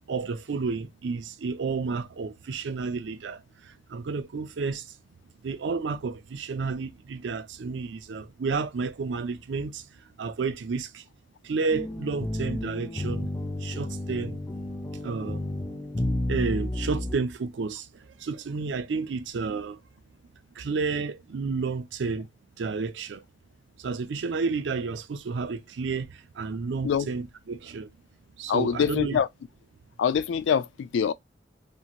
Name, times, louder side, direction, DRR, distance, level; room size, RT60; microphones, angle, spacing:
voice 1, 0.1-4.9 5.4-9.9 10.2-11.0 11.4-13.3 13.6-14.4 15.0-15.5 16.3-17.9 18.2-19.8 20.6-22.3 22.6-23.2 23.8-27.9 28.4-29.2, right 4 dB, 80° right, 0.4 m, -31 dB
sound 1, 11.7-17.1, left 1 dB, 15° left, 0.4 m, -31 dB
voice 2, 28.5-29.3 30.0-31.1, left 7 dB, 85° left, 0.3 m, -24 dB
2.9 x 2.7 x 2.4 m
head